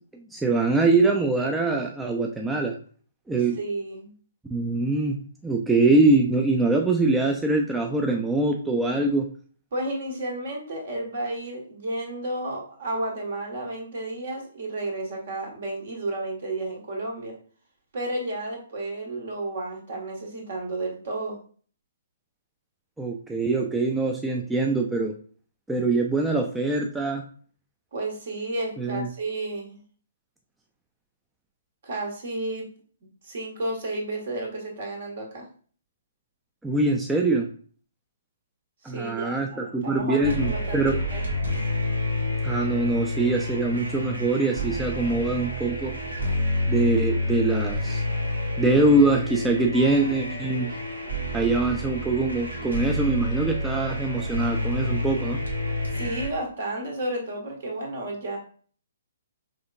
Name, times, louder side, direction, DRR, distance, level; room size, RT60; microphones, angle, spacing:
voice 1, 0.1-2.8 3.3-3.6 4.5-9.3 23.0-25.1 25.7-27.2 28.8-29.1 36.6-37.5 38.8-41.0 42.4-45.9 46.7-48.0 48.6-50.7 51.3-55.4, right 2 dB, 5° right, 1 dB, 0.4 m, -23 dB
voice 2, 3.6-4.1 9.7-17.3 17.9-21.4 27.9-29.8 31.8-32.7 33.2-35.4 38.8-41.2 55.9-58.4, right 2 dB, 50° right, 1 dB, 1.4 m, -32 dB
sound 1, 40.2-56.3, left 1 dB, 75° right, 1.2 m, -29 dB
5.0 x 3.5 x 2.4 m, 0.44 s
figure-of-eight pair, 125°, 0 cm